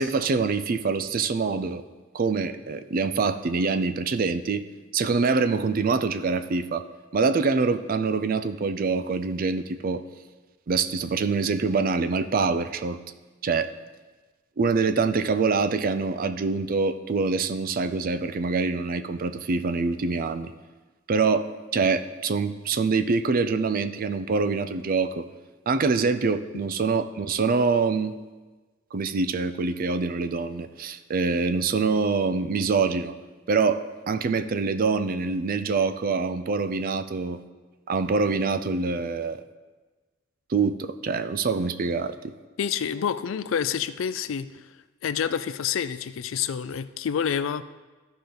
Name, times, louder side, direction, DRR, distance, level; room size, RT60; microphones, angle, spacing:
voice 1, 0.0-1.8 2.1-4.6 4.9-6.9 7.1-10.0 10.7-13.0 13.4-13.7 14.6-20.5 21.1-25.3 25.7-28.1 28.9-33.1 33.5-37.4 37.9-39.4 40.5-42.1, right 4 dB, 45° right, 11 dB, 0.4 m, -25 dB
voice 2, 42.6-44.5 45.0-47.6, left 8 dB, 75° left, 13 dB, 0.4 m, -28 dB
13.5 x 5.1 x 3.9 m, 1.3 s
head